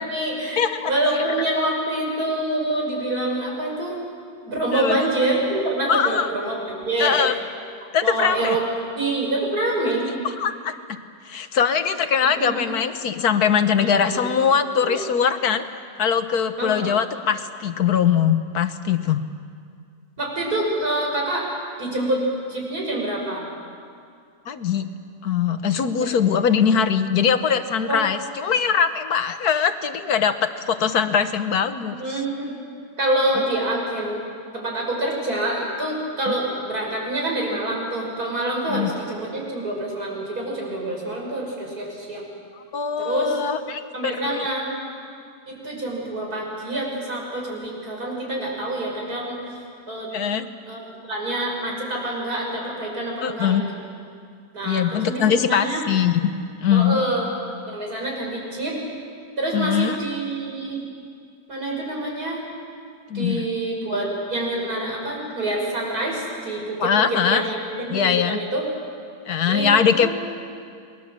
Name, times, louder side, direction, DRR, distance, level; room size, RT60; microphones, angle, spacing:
voice 1, 0.0-4.0 4.4-7.2 8.0-8.6 9.0-10.1 12.3-12.6 13.8-14.3 14.8-15.0 16.6-17.0 20.2-21.5 21.8-22.2 22.5-23.5 26.0-26.1 27.9-28.0 32.0-32.6 33.0-34.3 34.5-42.2 43.0-43.4 43.9-44.7 45.5-49.4 49.9-50.1 50.7-53.6 54.5-55.8 56.7-57.3 57.7-58.8 59.4-60.8 61.5-62.5 63.1-68.7 69.4-69.7 70.0-70.1, right 1 dB, 80° right, -1 dB, 6.1 m, -26 dB
voice 2, 0.6-0.9 4.7-5.1 5.9-6.3 7.0-7.3 7.9-8.6 10.4-10.7 11.3-15.6 16.0-19.2 24.5-24.9 25.2-32.0 36.3-36.4 38.7-38.9 42.7-44.5 50.1-50.5 53.2-53.6 54.6-56.3 56.6-57.0 59.5-60.0 63.1-63.4 66.8-67.4 67.9-68.4 69.3-70.1, left 7 dB, 85° left, 10 dB, 1.7 m, -21 dB
29.0 x 21.5 x 7.5 m, 2.2 s
omnidirectional pair, 1.6 m